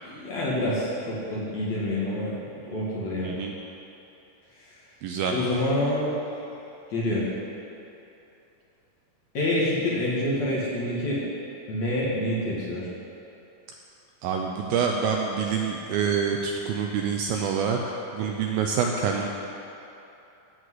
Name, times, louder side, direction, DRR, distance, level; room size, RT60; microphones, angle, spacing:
voice 1, 0.0-2.3 2.7-3.4 5.3-6.2 6.9-7.3 9.3-11.2 11.7-12.9, left 1 dB, 50° left, -6 dB, 2.9 m, -27 dB
voice 2, 3.2-3.5 5.0-5.4 14.2-17.8 18.1-19.3, right 6 dB, 80° right, 1 dB, 2.2 m, -26 dB
15.0 x 5.2 x 7.9 m, 2.9 s
omnidirectional pair, 4.7 m